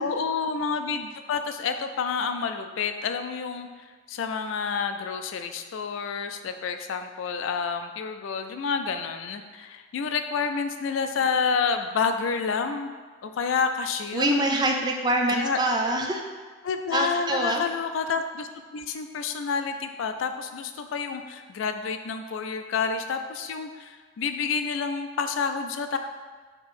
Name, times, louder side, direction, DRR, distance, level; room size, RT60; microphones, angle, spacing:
voice 1, 0.0-3.7 4.1-12.9 13.2-14.4 15.3-15.6 16.6-26.0, left 5 dB, 90° left, 7 dB, 0.4 m, -29 dB
voice 2, 14.1-16.2 16.9-17.6, right 1 dB, 20° right, 2 dB, 0.4 m, -25 dB
4.4 x 2.9 x 4.2 m, 1.5 s
head